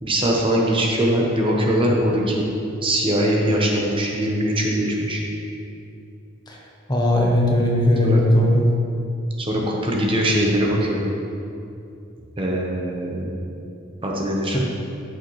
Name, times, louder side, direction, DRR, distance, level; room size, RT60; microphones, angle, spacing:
voice 1, 0.0-2.4 2.8-5.2 8.0-8.2 9.4-11.0 12.4-13.3 14.0-14.6, right 1 dB, 25° right, -2 dB, 1.0 m, -21 dB
voice 2, 6.9-8.7, left 1 dB, 20° left, -2 dB, 1.0 m, -18 dB
13.0 x 6.5 x 3.2 m, 2.6 s
head